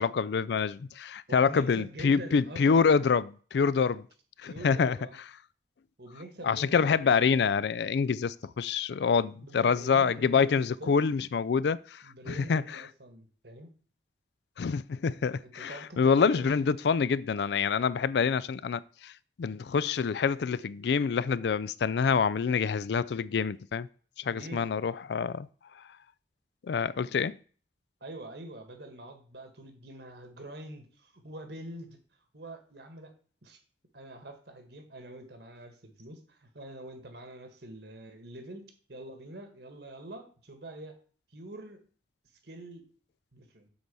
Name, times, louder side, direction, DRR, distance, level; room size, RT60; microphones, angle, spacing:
voice 1, 0.0-4.1 4.4-5.0 6.4-12.6 14.6-19.1 19.4-23.9 24.2-25.5 26.7-27.4, left 6 dB, 70° left, 0.4 m, -26 dB
voice 2, 1.3-2.8 3.7-4.0 4.4-5.2 6.0-6.9 9.4-11.0 12.0-13.7 15.4-16.5 24.3-24.7 28.0-32.0 32.3-33.1 33.4-33.6 33.9-41.0 41.3-41.8 42.4-42.9 43.3-43.7, right 1 dB, 70° right, 1.7 m, -45 dB
7.9 x 4.0 x 6.9 m
head